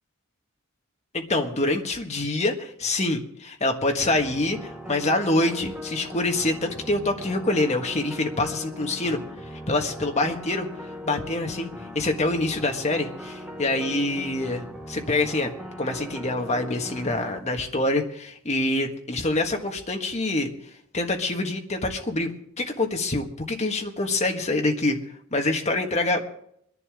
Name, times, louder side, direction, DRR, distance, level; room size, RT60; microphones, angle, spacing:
voice 1, 1.1-9.2 9.7-10.7 11.0-11.7 11.9-15.5 15.8-20.5 20.9-25.0 25.3-26.2, left 2 dB, 30° left, 3 dB, 1.6 m, -25 dB
sound 1, 4.0-17.4, left 1 dB, 5° right, 1.0 m, -39 dB
24.0 x 11.0 x 3.7 m, 0.68 s
head